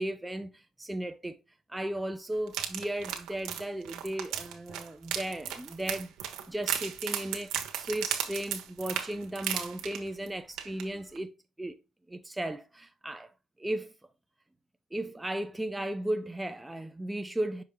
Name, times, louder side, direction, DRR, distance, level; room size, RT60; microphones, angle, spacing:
voice 1, 0.0-1.4 1.7-11.3 11.6-11.8 12.1-13.3 13.6-13.9 14.9-17.6, right 1 dB, 10° right, 0.6 m, -35 dB
sound 1, 2.5-10.3 10.6-10.8 11.2-11.3, right 10 dB, 85° right, 1.2 m, -35 dB
6.1 x 4.9 x 3.3 m
cardioid pair, 90°, 0 cm